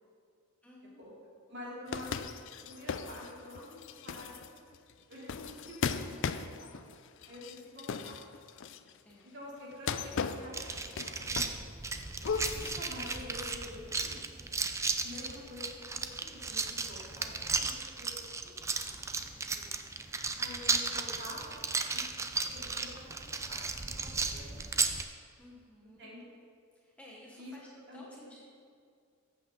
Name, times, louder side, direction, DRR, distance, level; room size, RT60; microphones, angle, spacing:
voice 1, 0.6-1.0 8.0-8.3 9.0-9.3 15.1-15.4 25.4-26.1 26.7-28.4, left 1 dB, 5° left, -4 dB, 1.1 m, -55 dB
voice 2, 1.5-2.1 2.6-4.6 5.1-6.8 7.3-8.2 9.3-10.8 11.0-11.6 12.5-14.3 15.0-17.7 18.0-18.5 19.1-19.2 19.5-19.7 20.4-22.0 22.5-24.9 26.0-26.3 27.4-27.5 27.9-28.5, left 1 dB, 50° right, -5 dB, 2.9 m, -48 dB
sound 1, 1.9-9.0 9.7-11.7 12.0-13.5, left 6 dB, 55° left, 0.4 m, -38 dB
sound 2, 10.5-25.0, right 4 dB, 15° right, 0.3 m, -35 dB
14.0 x 7.8 x 3.8 m, 2.2 s
head